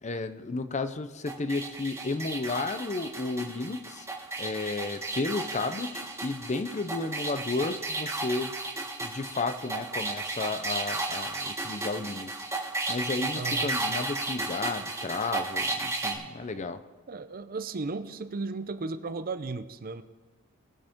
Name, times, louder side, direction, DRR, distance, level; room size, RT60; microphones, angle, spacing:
voice 1, 0.0-4.1 4.4-8.6 9.0-12.5 12.9-16.8, left 3 dB, 30° left, 11 dB, 0.6 m, -33 dB
sound 1, 1.3-16.1, right 2 dB, 15° right, 1.3 m, -34 dB
voice 2, 13.4-14.0 17.1-20.0, right 3 dB, 40° right, 12 dB, 0.6 m, -35 dB
21.5 x 7.8 x 3.7 m, 1.3 s
head